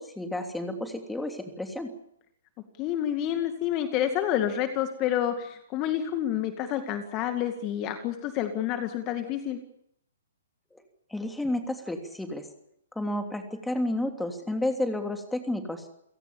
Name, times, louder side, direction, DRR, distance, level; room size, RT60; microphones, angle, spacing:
voice 1, 0.0-1.9 10.7-10.8 11.1-12.5 12.9-15.8, left 1 dB, 5° left, 5 dB, 3.0 m, -31 dB
voice 2, 2.8-9.6, left 10 dB, 30° left, 7 dB, 2.2 m, -29 dB
29.5 x 17.5 x 7.2 m, 0.74 s
figure-of-eight pair, 120°, 0 cm